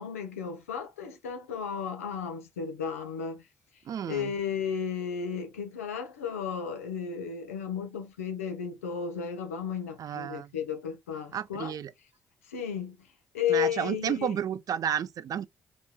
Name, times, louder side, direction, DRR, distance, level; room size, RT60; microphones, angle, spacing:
voice 1, 0.0-3.4 4.1-11.7 12.4-13.1 13.3-14.3, left 7 dB, 90° left, 0.7 m, -33 dB
voice 2, 3.9-4.3 10.0-10.5 11.3-11.9 13.5-15.5, right 9 dB, 50° right, 0.5 m, -31 dB
4.1 x 2.9 x 2.3 m
hypercardioid pair, 45°, 8 cm